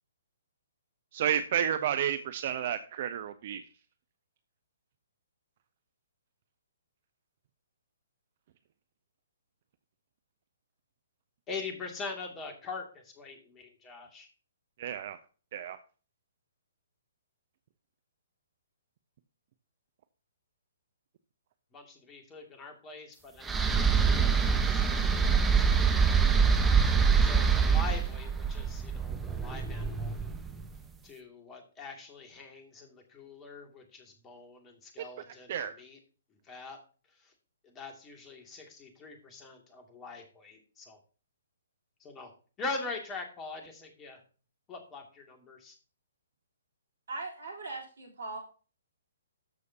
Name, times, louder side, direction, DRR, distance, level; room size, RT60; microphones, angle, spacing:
voice 1, 1.1-3.6 14.8-15.2 15.5-15.8 35.5-35.7, right 9 dB, 45° right, 12 dB, 0.6 m, -31 dB
voice 2, 11.5-14.3 21.7-26.5 26.8-30.2 31.0-36.0 36.3-36.8 37.1-37.3 37.6-41.0 42.0-42.3 42.6-44.2 44.7-45.8, left 3 dB, 20° left, 3 dB, 2.4 m, -43 dB
sound 1, 23.4-30.6, right 6 dB, 10° right, 1.0 m, -25 dB
voice 3, 47.1-48.4, right 3 dB, 65° right, -1 dB, 3.6 m, -39 dB
13.5 x 6.5 x 2.8 m, 0.37 s
figure-of-eight pair, 125°, 0 cm